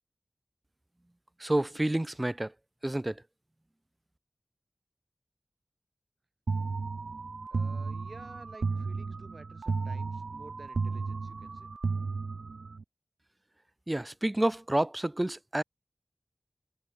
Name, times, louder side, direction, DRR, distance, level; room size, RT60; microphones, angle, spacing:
voice 1, 1.4-2.5 2.8-3.2 13.9-15.6, right 1 dB, 25° right, 0.8 m, -29 dB
sound 1, 6.5-12.8, right 4 dB, 85° right, 0.5 m, -34 dB
voice 2, 7.5-11.7, right 3 dB, 60° right, 7.4 m, -52 dB
wide cardioid pair, 60°, 0 cm